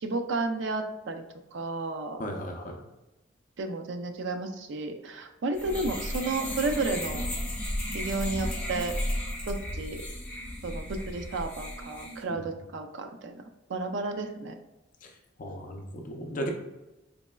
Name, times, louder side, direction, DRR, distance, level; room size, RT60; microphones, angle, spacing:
voice 1, 0.0-1.2 1.5-2.2 3.6-7.2 7.9-8.9 9.5-10.0 10.6-13.4 13.7-14.5, right 3 dB, 65° right, 5 dB, 0.4 m, -32 dB
voice 2, 2.2-2.8 12.3-12.4 15.0-15.1 15.4-16.5, equal, 40° left, 2 dB, 0.4 m, -36 dB
sound 1, 5.5-12.2, left 1 dB, 10° left, 0.8 m, -34 dB
4.1 x 3.1 x 2.2 m, 1.0 s
head